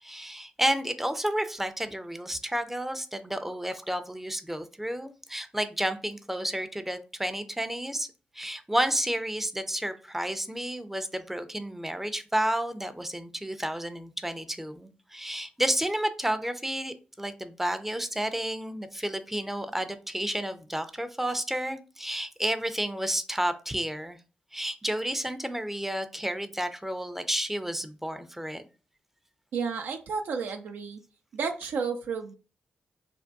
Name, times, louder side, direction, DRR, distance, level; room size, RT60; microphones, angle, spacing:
voice 1, 0.0-8.1 8.3-24.2 24.5-28.6, right 1 dB, 10° right, 10 dB, 0.4 m, -31 dB
voice 2, 29.5-31.0 31.3-32.3, right 5 dB, 75° right, 5 dB, 0.3 m, -32 dB
3.4 x 2.2 x 2.6 m, 0.36 s
supercardioid pair, 45°, 4 cm